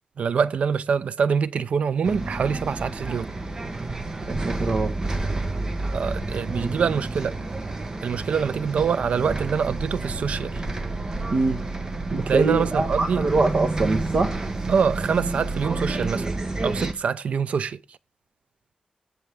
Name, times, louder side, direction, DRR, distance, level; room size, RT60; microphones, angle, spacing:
voice 1, 0.2-3.3 5.9-7.4 8.0-10.5 12.3-13.3 14.7-16.3 16.6-17.8, right 6 dB, 70° right, 0.5 m, -25 dB
Bus, 2.0-16.9, right 2 dB, 30° right, 1.1 m, -30 dB
voice 2, 4.3-5.2 11.3-11.6 12.1-14.3, right 3 dB, 50° right, 1.4 m, -24 dB
19.0 x 7.0 x 3.5 m
wide cardioid pair, 160°, 2 cm